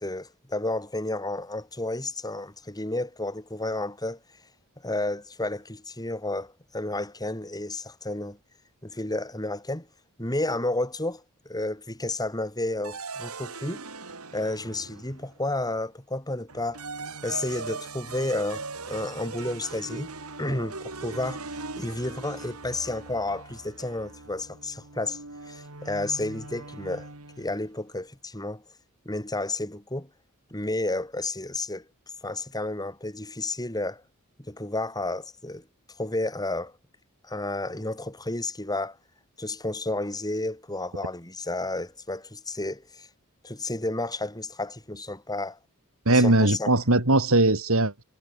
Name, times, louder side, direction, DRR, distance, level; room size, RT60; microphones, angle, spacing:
voice 1, 0.0-4.2 4.8-8.4 8.8-9.9 10.2-13.8 14.3-16.8 17.2-20.1 20.4-21.4 21.8-25.2 25.5-27.1 27.4-28.6 29.0-30.1 30.5-31.9 32.2-34.0 34.4-35.6 36.0-36.7 37.2-39.0 39.4-43.1 43.4-45.6 46.1-46.7, left 2 dB, 20° left, 6.1 m, -31 dB
sound 1, 12.8-15.4 16.5-27.6, right 3 dB, 85° right, 4.7 m, -40 dB
voice 2, 46.1-48.0, right 2 dB, 65° right, 3.5 m, -20 dB
head